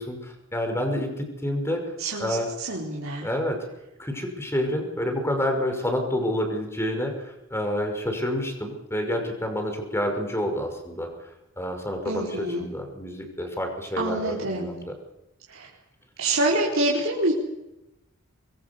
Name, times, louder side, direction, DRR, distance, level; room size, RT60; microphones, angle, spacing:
voice 1, 0.0-1.8 2.2-2.5 3.2-3.7 4.0-11.1 11.6-14.9, equal, 15° left, 4 dB, 5.7 m, -28 dB
voice 2, 2.0-3.3 12.0-12.6 14.0-14.7 15.5-15.7 16.2-17.3, right 2 dB, 70° right, -4 dB, 4.9 m, -26 dB
25.5 x 22.5 x 7.1 m, 0.92 s
head